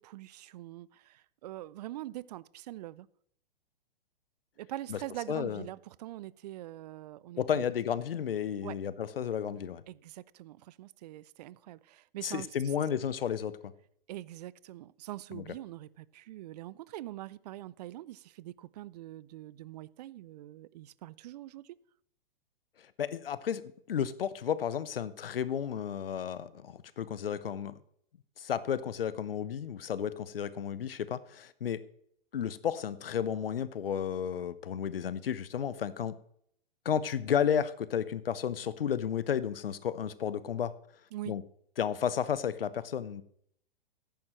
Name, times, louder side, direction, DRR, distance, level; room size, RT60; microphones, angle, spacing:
voice 1, 0.0-3.1 4.6-7.6 8.6-8.8 9.9-12.5 14.1-21.8 41.1-41.4, right 15 dB, 45° right, 0.5 m, -44 dB
voice 2, 5.3-5.6 7.4-9.8 12.2-13.7 15.3-15.4 23.0-23.6 23.9-27.7 28.4-31.8 32.3-36.1 36.8-40.7 41.3-41.4 41.8-43.2, left 8 dB, 70° left, 0.9 m, -32 dB
14.0 x 10.5 x 3.1 m
figure-of-eight pair, 110°, 29 cm